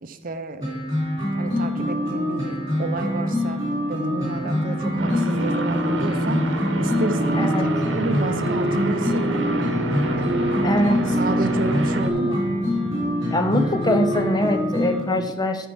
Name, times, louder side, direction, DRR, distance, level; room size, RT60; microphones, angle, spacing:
voice 1, 0.0-0.8 1.3-3.6 3.9-9.7 10.1-12.4, right 2 dB, 45° right, 9 dB, 0.6 m, -31 dB
sound 1, 0.6-15.0, equal, 20° right, 3.4 m, -25 dB
voice 2, 4.4-4.9 7.3-7.8 10.6-11.1 13.3-15.7, left 1 dB, 20° left, 7 dB, 0.6 m, -23 dB
sound 2, 5.0-12.1, right 1 dB, 70° right, 1.0 m, -25 dB
13.0 x 4.5 x 5.2 m, 1.2 s
head